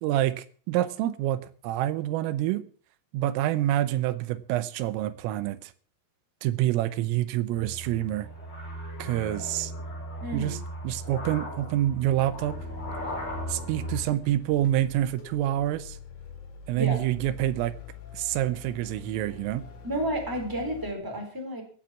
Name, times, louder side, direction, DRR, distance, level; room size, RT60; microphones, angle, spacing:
voice 1, 0.0-2.6 3.1-5.7 6.4-8.3 9.0-9.7 10.3-10.6 10.8-12.6 13.5-16.0 16.7-17.7 18.1-19.6, right 13 dB, 90° right, 14 dB, 3.6 m, -27 dB
sound 1, 7.5-14.0, equal, 20° left, 5.4 m, -37 dB
voice 2, 10.2-10.6 16.7-17.0 19.8-21.6, right 1 dB, 5° right, 3 dB, 3.2 m, -31 dB
sound 2, 12.3-20.9, left 6 dB, 80° left, 5.8 m, -45 dB
15.0 x 9.1 x 7.2 m, 0.43 s
omnidirectional pair, 5.7 m